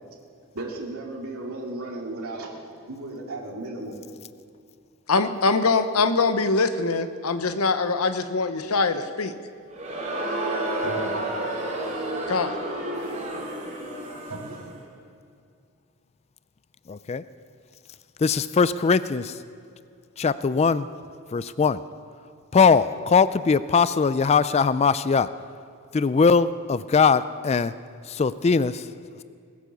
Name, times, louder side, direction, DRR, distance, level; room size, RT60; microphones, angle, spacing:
voice 1, 0.5-4.0 10.8-11.3 14.2-14.7, right 2 dB, 75° right, -2 dB, 2.4 m, -35 dB
voice 2, 5.1-9.3 12.3-12.6, left 4 dB, 80° left, 10 dB, 0.8 m, -23 dB
Crowd, 9.7-14.7, right 1 dB, 35° right, 3.0 m, -30 dB
voice 3, 16.9-17.2 18.2-19.3 20.2-20.9 21.3-21.8 22.5-25.3 25.9-27.7 28.1-28.9, left 5 dB, 30° left, 15 dB, 0.3 m, -21 dB
20.0 x 9.8 x 6.9 m, 2.3 s
head